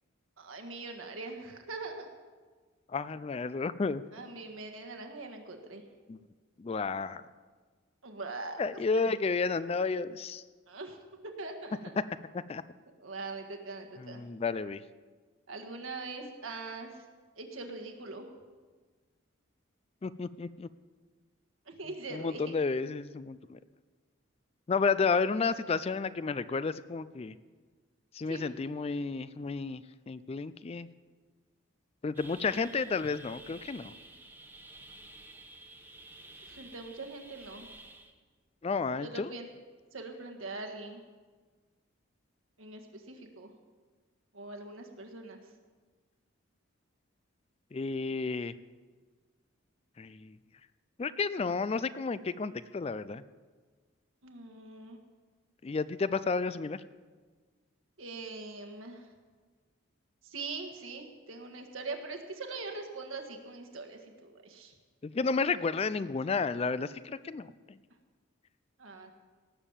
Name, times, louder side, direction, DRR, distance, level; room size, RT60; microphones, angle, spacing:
voice 1, 0.4-2.1 4.1-5.8 8.0-8.6 10.7-11.0 11.4-11.8 13.0-14.2 15.5-17.0 17.4-18.3 21.7-22.5 28.3-28.5 36.5-37.7 39.0-39.5 39.9-41.0 42.6-43.5 44.3-45.4 54.2-55.0 58.0-59.1 60.2-64.7 68.8-69.1, right 3 dB, 80° right, 4 dB, 1.7 m, -42 dB
voice 2, 2.9-4.0 6.1-6.3 6.6-7.2 8.6-10.4 12.0-12.1 12.3-12.6 14.0-14.8 20.0-20.7 22.1-23.6 24.7-27.4 28.1-29.8 30.1-30.9 32.0-33.9 38.6-39.3 47.7-48.5 50.0-50.4 51.0-53.2 55.6-56.8 65.0-67.8, left 4 dB, 30° left, 15 dB, 0.3 m, -32 dB
sound 1, 32.1-38.1, right 2 dB, 10° right, 1.1 m, -51 dB
18.0 x 7.2 x 7.3 m, 1.5 s
head